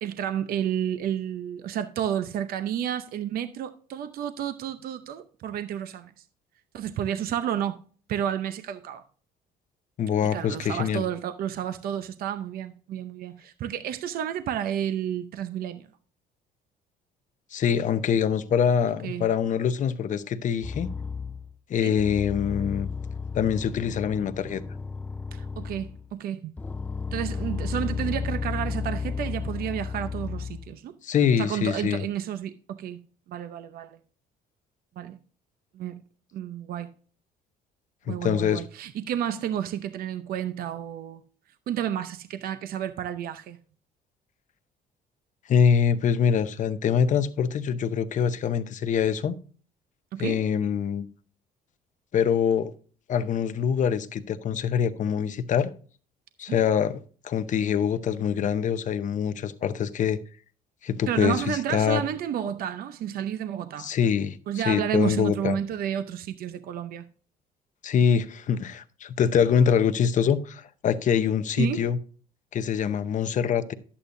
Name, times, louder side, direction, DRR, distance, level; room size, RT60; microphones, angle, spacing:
voice 1, 0.0-6.1 6.7-7.8 8.1-9.0 10.2-15.9 19.0-19.3 21.8-22.0 25.3-26.5 27.1-30.9 31.4-33.0 33.3-34.0 35.0-35.2 35.7-36.0 36.3-36.9 38.1-41.2 41.7-43.6 50.1-50.4 56.5-56.6 61.1-63.9 64.5-67.1 71.6-71.9, right 10 dB, 60° right, 0.7 m, -31 dB
voice 2, 10.0-11.0 17.5-20.9 21.7-22.9 23.3-24.6 31.0-32.0 38.1-38.6 45.5-49.4 50.2-51.1 52.1-52.7 53.1-55.7 56.4-60.2 60.8-62.0 63.8-65.6 67.8-72.0 72.5-73.7, left 7 dB, 50° left, 0.8 m, -24 dB
sound 1, 20.6-21.5 22.0-26.1 26.6-30.7, left 5 dB, 10° left, 0.3 m, -33 dB
11.0 x 8.5 x 2.6 m
cardioid pair, 110°, 17 cm